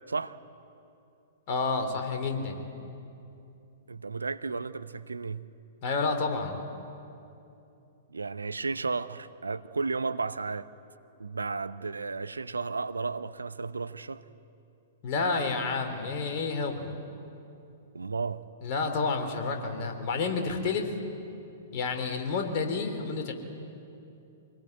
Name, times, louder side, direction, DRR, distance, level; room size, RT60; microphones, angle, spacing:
voice 1, 0.1-0.4 3.9-5.5 8.1-10.7 11.2-14.2 17.9-18.4, right 4 dB, 75° right, 0.7 m, -33 dB
voice 2, 1.5-2.6 5.8-6.6 15.0-16.9 18.6-20.9 21.7-23.3, left 4 dB, 40° left, 3.5 m, -30 dB
25.5 x 19.5 x 9.8 m
figure-of-eight pair, 110°, 0 cm